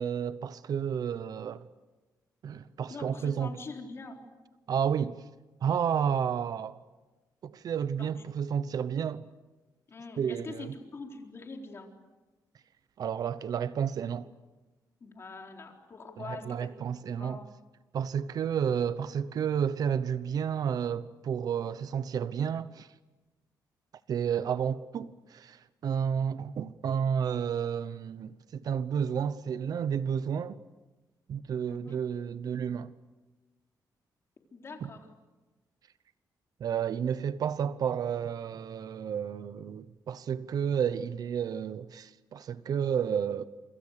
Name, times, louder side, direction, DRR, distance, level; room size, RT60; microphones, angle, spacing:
voice 1, 0.0-1.7 2.4-3.6 4.7-5.2 5.6-6.8 7.4-9.2 10.2-10.7 13.0-14.3 16.2-17.4 17.9-22.9 24.1-30.6 31.3-32.9 34.8-34.9 36.6-43.4, right 8 dB, 65° right, 0.9 m, -31 dB
voice 2, 2.9-4.2 8.0-8.2 9.9-11.9 15.0-16.7 17.1-17.5 31.7-32.0 34.5-35.1, left 3 dB, 40° left, 4.1 m, -44 dB
28.0 x 26.0 x 6.7 m
cardioid pair, 135°, 7 cm